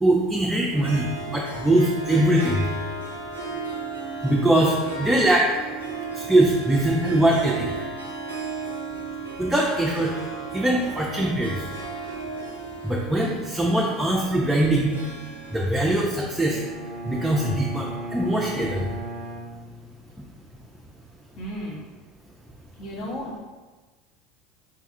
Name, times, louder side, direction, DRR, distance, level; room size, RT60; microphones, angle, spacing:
voice 1, 0.0-2.7 4.2-5.5 6.2-7.8 9.4-10.1 10.5-11.7 12.8-15.0 15.5-16.6 17.0-18.9, right 1 dB, 10° right, -3 dB, 0.4 m, -22 dB
Harp, 0.7-17.2, right 3 dB, 90° right, 0.4 m, -35 dB
Bowed string instrument, 16.5-20.4, right 1 dB, 15° left, 0.8 m, -36 dB
voice 2, 21.4-21.8 22.8-23.4, equal, 50° left, -4 dB, 1.0 m, -34 dB
4.1 x 2.3 x 2.5 m, 1.3 s
figure-of-eight pair, 70°, 0 cm